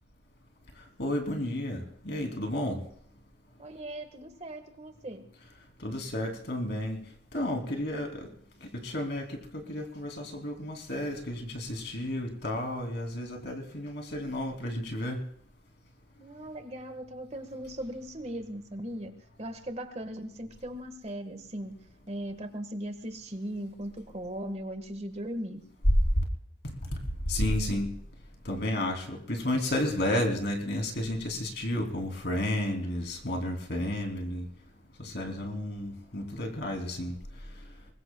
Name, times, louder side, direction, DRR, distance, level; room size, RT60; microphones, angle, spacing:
voice 1, 1.0-2.8 5.8-7.0 7.3-8.3 8.8-9.2 9.5-15.2 27.3-27.9 28.4-34.5 35.0-37.1, left 1 dB, 65° left, 3 dB, 3.0 m, -32 dB
voice 2, 3.6-5.3 16.2-21.8 22.1-25.6, right 1 dB, 35° right, 7 dB, 1.5 m, -38 dB
23.5 x 21.0 x 2.3 m, 0.67 s
head